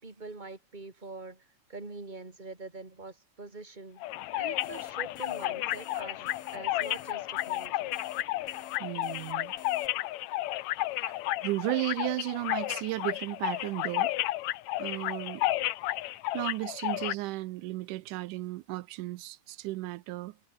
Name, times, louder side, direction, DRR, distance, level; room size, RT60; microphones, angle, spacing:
voice 1, 0.0-4.1 4.3-8.0, right 3 dB, 15° right, 3.5 m, -44 dB
sound 1, 4.0-17.1, left 16 dB, 75° left, 1.9 m, -32 dB
sound 2, 4.3-9.9, left 5 dB, 45° left, 4.6 m, -54 dB
voice 2, 8.8-9.5 11.1-11.2 11.4-14.1 14.8-15.5 16.3-20.4, right 18 dB, 85° right, 2.2 m, -34 dB
omnidirectional pair, 3.6 m